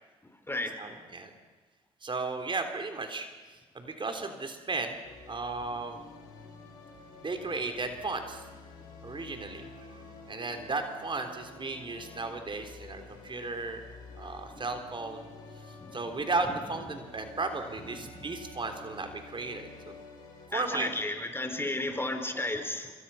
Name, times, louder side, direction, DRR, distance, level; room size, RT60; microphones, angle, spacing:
voice 1, 0.8-1.3 2.0-5.0 5.3-6.0 7.2-8.4 9.0-13.8 14.1-15.3 15.9-20.0 20.5-20.9, right 3 dB, 35° right, 6 dB, 3.7 m, -35 dB
sound 1, 5.0-20.5, left 3 dB, 80° left, 7.6 m, -49 dB
voice 2, 20.5-22.9, left 2 dB, 15° left, 7 dB, 4.3 m, -33 dB
27.5 x 24.0 x 5.8 m, 1.4 s
hypercardioid pair, 50°, 14 cm